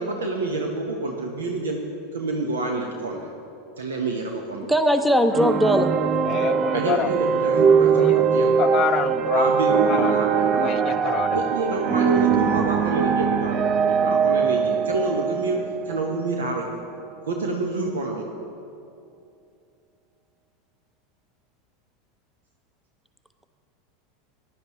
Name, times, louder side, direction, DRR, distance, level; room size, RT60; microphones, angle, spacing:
voice 1, 0.0-3.3 3.8-4.7 6.7-8.6 9.3-10.7 11.3-16.7 17.3-18.3, right 2 dB, 80° right, 2 dB, 0.9 m, -28 dB
voice 2, 4.7-5.9, equal, 5° right, 8 dB, 0.7 m, -19 dB
sound 1, 5.3-16.6, right 6 dB, 35° right, 0.5 m, -21 dB
voice 3, 6.3-7.1 7.9-8.2 8.6-9.5 9.9-10.2 10.6-11.4, left 11 dB, 40° left, 15 dB, 0.4 m, -27 dB
15.5 x 11.0 x 3.0 m, 2.5 s
hypercardioid pair, 85°, 0 cm